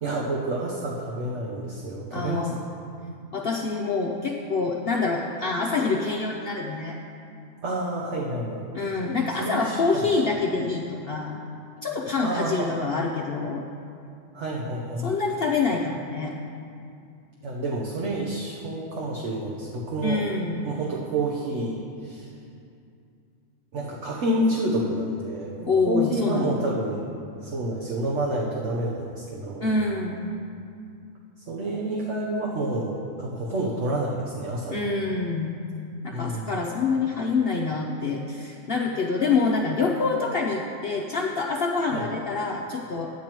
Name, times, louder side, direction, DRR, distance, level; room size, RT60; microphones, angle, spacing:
voice 1, 0.0-2.5 7.6-8.7 9.0-9.1 9.4-10.0 12.2-12.9 14.3-15.1 17.4-20.2 20.6-22.3 23.7-27.1 27.4-29.7 31.5-34.8 36.1-36.6 41.9-42.1, right 1 dB, 55° right, -3 dB, 1.2 m, -29 dB
voice 2, 2.1-2.6 3.3-7.0 8.7-11.4 11.8-13.6 15.0-16.3 20.0-20.7 25.7-26.6 29.6-30.3 34.7-35.6 36.0-43.1, left 4 dB, 55° left, -1 dB, 0.7 m, -26 dB
14.0 x 9.5 x 3.0 m, 2.5 s
omnidirectional pair, 1.5 m